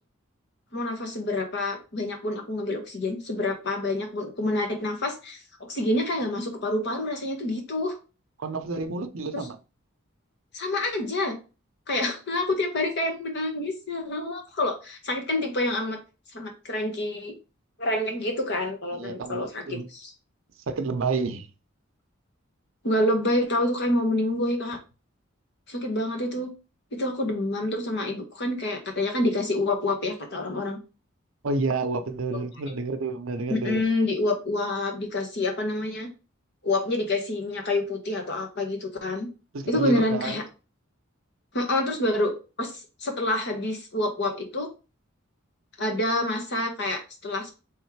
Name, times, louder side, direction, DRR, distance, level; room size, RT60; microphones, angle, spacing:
voice 1, 0.7-8.0 9.3-9.4 10.5-11.3 11.9-16.0 16.3-17.3 17.8-20.1 22.8-24.8 25.7-26.5 26.9-30.8 33.5-36.1 36.6-39.3 39.7-40.4 41.5-42.3 42.6-42.7 43.0-44.7 45.8-47.5, left 1 dB, 55° left, 1.2 m, -27 dB
voice 2, 8.4-9.6 18.9-19.8 20.7-21.5 31.4-33.8 39.5-40.4, right 3 dB, 70° right, 0.6 m, -29 dB
3.6 x 3.2 x 4.6 m
head